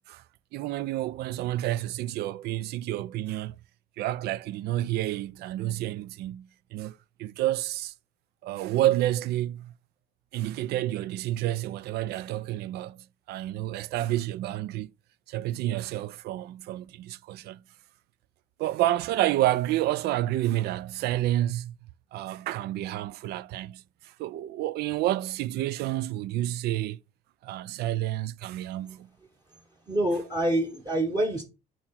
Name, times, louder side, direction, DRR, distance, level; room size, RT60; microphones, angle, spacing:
voice 1, 0.5-3.5 4.0-7.9 8.4-9.7 10.3-14.9 15.3-17.6 18.6-21.7 22.1-27.0 27.4-29.1, right 14 dB, 70° right, 0.4 m, -29 dB
voice 2, 29.9-31.4, right 1 dB, 25° right, 1.2 m, -26 dB
6.5 x 3.0 x 5.5 m
cardioid pair, 110°, 17 cm